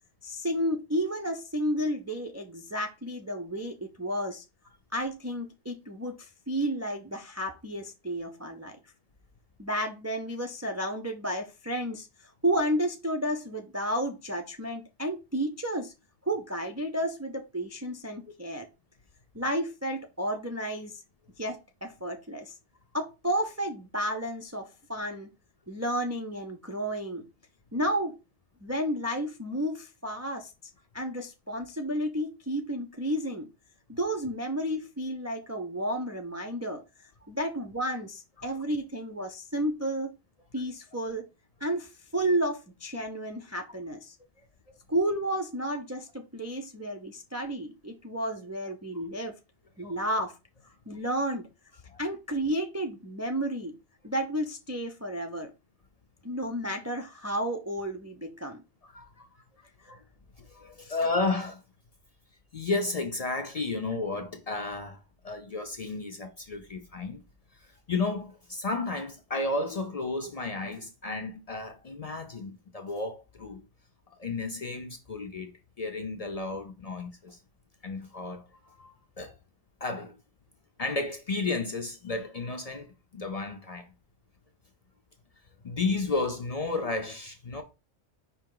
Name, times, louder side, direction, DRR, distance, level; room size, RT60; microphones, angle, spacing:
voice 1, 0.2-4.4 4.9-8.8 9.6-15.9 16.2-18.7 19.3-21.0 21.4-22.6 22.9-25.3 25.7-27.2 27.7-28.2 28.6-30.5 30.9-33.5 33.9-36.8 37.3-40.1 40.5-41.3 41.6-44.1 44.9-49.4 49.8-50.4 50.9-51.5 52.0-53.8 54.0-55.5 56.2-58.6, right 1 dB, 25° right, 0.3 m, -32 dB
voice 2, 58.9-59.3 59.9-60.0 60.4-61.6 62.5-65.0 65.2-67.2 67.9-73.6 74.2-75.5 75.8-77.4 77.8-79.3 79.8-80.2 80.8-83.8 85.6-87.6, left 3 dB, 45° left, 0.5 m, -33 dB
5.1 x 2.8 x 3.8 m
omnidirectional pair, 1.1 m